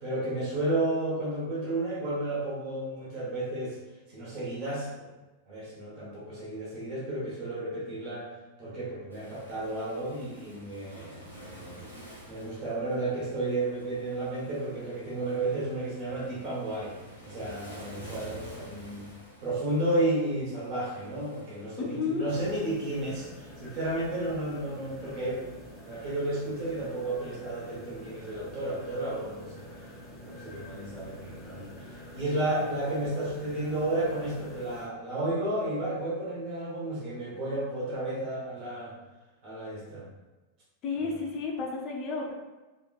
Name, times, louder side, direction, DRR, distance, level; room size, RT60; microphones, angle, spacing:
voice 1, 0.0-3.8 4.1-5.1 5.5-8.3 8.6-11.8 12.3-17.0 17.2-19.1 19.4-25.4 25.8-29.6 30.2-31.7 32.1-38.9 39.4-40.0, right 1 dB, 40° right, -6 dB, 1.0 m, -32 dB
Waves surf, 9.1-22.7, right 1 dB, 85° right, 0.7 m, -49 dB
voice 2, 21.8-22.3 40.8-42.3, left 4 dB, 40° left, 0 dB, 0.6 m, -32 dB
sound 1, 22.3-34.9, left 1 dB, 10° left, 0.9 m, -47 dB
3.5 x 2.5 x 2.3 m, 1.1 s
figure-of-eight pair, 90°, 0 cm